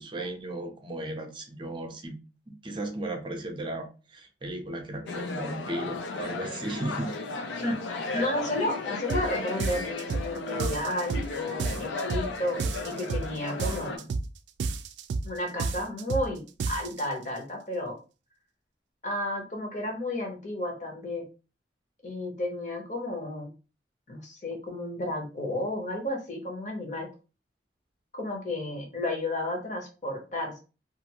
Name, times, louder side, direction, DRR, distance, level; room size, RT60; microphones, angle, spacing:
voice 1, 0.0-2.2 2.5-7.1, right 1 dB, 25° right, 0.5 m, -35 dB
sound 1, 5.1-14.0, left 3 dB, 90° left, 0.5 m, -35 dB
voice 2, 8.1-14.1 15.2-18.0 19.0-21.3 22.0-23.5 24.1-27.1 28.1-30.6, left 1 dB, 45° left, 0.9 m, -32 dB
sound 2, 9.1-9.3 9.6-10.3 10.6-11.3 11.6-12.3 12.6-13.3 13.6-14.3 14.6-15.3 15.6-16.3 16.6-17.0, right 4 dB, 80° right, 0.3 m, -30 dB
2.5 x 2.5 x 2.8 m
head